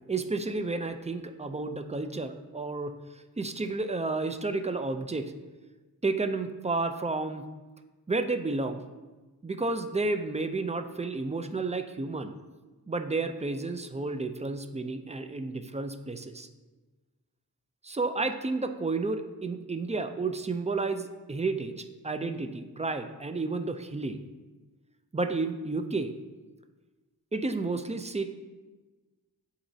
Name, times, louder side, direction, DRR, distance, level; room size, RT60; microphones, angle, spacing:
voice 1, 0.1-3.0 3.4-5.3 6.0-7.5 8.1-8.8 9.4-12.4 12.9-16.5 17.8-24.2 25.1-26.1 27.3-28.3, right 3 dB, 20° right, 8 dB, 0.4 m, -31 dB
11.0 x 4.1 x 2.7 m, 1.2 s
wide cardioid pair, 85°, 38 cm